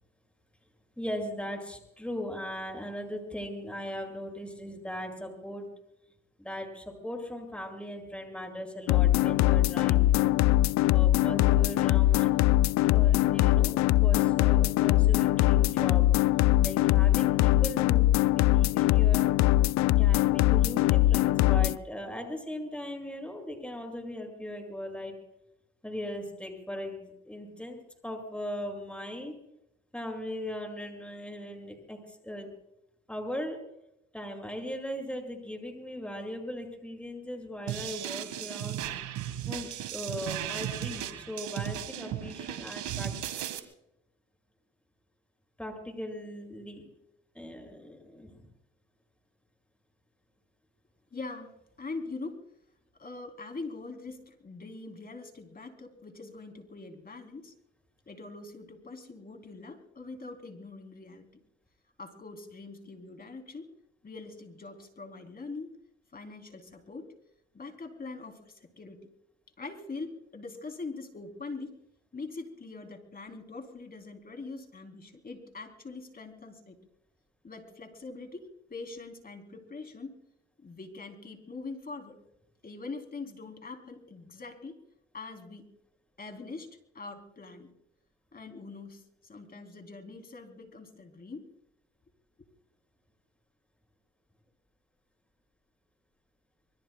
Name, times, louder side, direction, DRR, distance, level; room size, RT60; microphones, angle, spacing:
voice 1, 1.0-5.7 6.4-10.3 10.9-12.3 12.9-16.1 16.6-19.2 20.0-25.2 25.8-29.3 29.9-32.5 33.1-33.6 34.1-38.8 39.4-43.1 45.6-46.8 47.3-48.5, equal, 5° left, 3 dB, 7.4 m, -39 dB
sound 1, 8.9-21.8, left 16 dB, 65° left, 0.5 m, -22 dB
sound 2, 37.7-43.6, right 11 dB, 75° right, 1.9 m, -36 dB
voice 2, 51.1-52.5 53.0-57.5 58.1-61.3 62.0-63.7 64.0-65.7 66.1-67.1 67.5-69.0 69.6-71.8 72.1-76.8 77.4-80.2 80.6-82.2 82.6-84.8 85.1-85.7 86.2-87.7 88.3-91.5, left 3 dB, 30° left, 4 dB, 3.6 m, -43 dB
26.0 x 23.5 x 2.4 m, 0.82 s
supercardioid pair, 70°, 30 cm